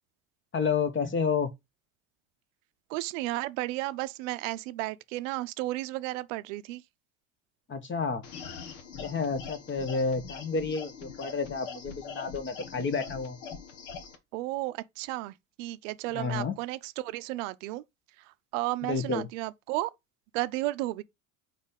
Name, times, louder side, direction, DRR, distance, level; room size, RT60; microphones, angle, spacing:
voice 1, 0.5-1.5 7.7-8.2 9.0-13.4 16.1-16.6 18.8-19.3, left 5 dB, 30° left, 1.2 m, -30 dB
voice 2, 2.9-6.8 14.3-17.8 18.5-19.9 20.3-21.0, right 18 dB, 75° right, 0.6 m, -33 dB
sound 1, 8.2-14.2, left 6 dB, 85° left, 1.4 m, -43 dB
4.5 x 4.1 x 5.3 m
hypercardioid pair, 85°, 38 cm